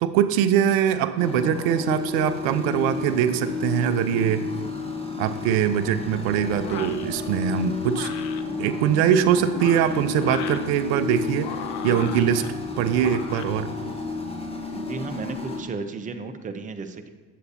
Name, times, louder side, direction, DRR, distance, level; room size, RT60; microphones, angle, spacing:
voice 1, 0.0-4.5 5.2-8.2 8.6-11.5 11.8-12.4 12.8-13.7, right 9 dB, 70° right, 12 dB, 0.6 m, -22 dB
sound 1, 1.2-15.6, left 3 dB, 10° left, 1.2 m, -31 dB
sound 2, 6.6-7.1 7.9-8.4 9.4-10.7 11.4-12.5 13.0-13.5, left 9 dB, 60° left, 0.7 m, -37 dB
voice 2, 14.7-17.1, right 4 dB, 15° right, 8 dB, 0.5 m, -34 dB
8.5 x 7.7 x 2.8 m, 1.4 s
hypercardioid pair, 60°, 49 cm